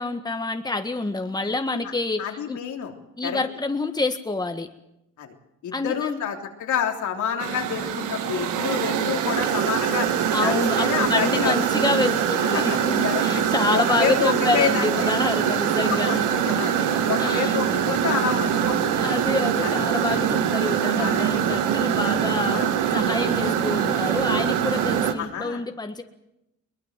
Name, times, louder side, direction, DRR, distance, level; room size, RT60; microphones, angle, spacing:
voice 1, 0.0-2.6 3.2-4.7 5.7-6.2 10.3-16.2 17.2-17.6 19.0-22.6 22.9-26.0, left 3 dB, 15° left, 6 dB, 1.7 m, -27 dB
voice 2, 2.2-2.9 3.2-3.4 5.2-5.3 5.6-10.1 10.4-11.8 12.5-13.4 13.7-15.1 16.0-16.7 17.0-19.0 19.6-19.8 21.0-21.6 22.5-22.7 25.2-25.6, left 8 dB, 75° left, 2 dB, 3.4 m, -28 dB
sound 1, 7.4-25.1, right 8 dB, 90° right, 1.8 m, -23 dB
22.5 x 20.0 x 7.5 m, 0.87 s
cardioid pair, 90°, 30 cm